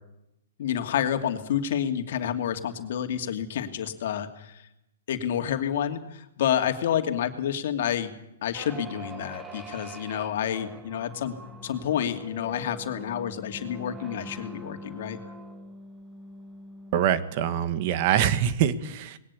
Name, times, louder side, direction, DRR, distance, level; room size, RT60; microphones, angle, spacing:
voice 1, 0.6-4.7 5.1-8.1 8.4-11.3 11.6-15.2, left 9 dB, 60° left, 6 dB, 2.6 m, -29 dB
sound 1, 8.5-17.3, right 1 dB, 15° right, 1.8 m, -43 dB
voice 2, 16.9-19.2, right 9 dB, 45° right, 13 dB, 1.5 m, -24 dB
20.5 x 18.0 x 8.5 m, 0.85 s
hypercardioid pair, 135°, 0 cm